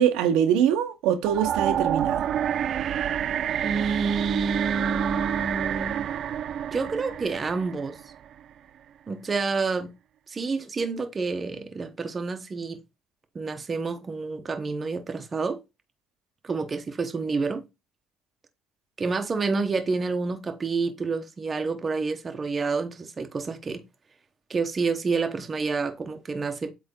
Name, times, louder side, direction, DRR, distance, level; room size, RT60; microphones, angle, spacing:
voice 1, 0.0-2.3, right 9 dB, 85° right, 1.0 m, -23 dB
sound 1, 1.2-8.3, right 9 dB, 45° right, 0.3 m, -28 dB
voice 2, 3.6-6.1 6.7-8.0 9.1-9.9 10.3-12.8 13.3-15.6 16.4-17.6 19.0-23.8 24.5-26.7, right 4 dB, 25° right, 0.9 m, -28 dB
7.9 x 3.3 x 3.7 m
cardioid pair, 125°, 0 cm